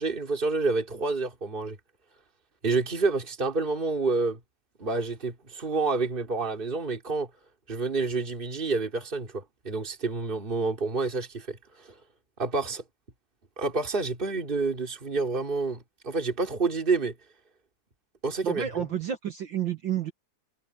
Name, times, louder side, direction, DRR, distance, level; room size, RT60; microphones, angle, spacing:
voice 1, 0.0-1.8 2.6-4.4 4.8-7.3 7.7-11.6 12.4-12.8 13.6-17.1 18.2-18.8, right 3 dB, 15° right, 3.1 m, -28 dB
voice 2, 18.4-20.1, right 9 dB, 65° right, 1.1 m, -30 dB
omnidirectional pair, 3.7 m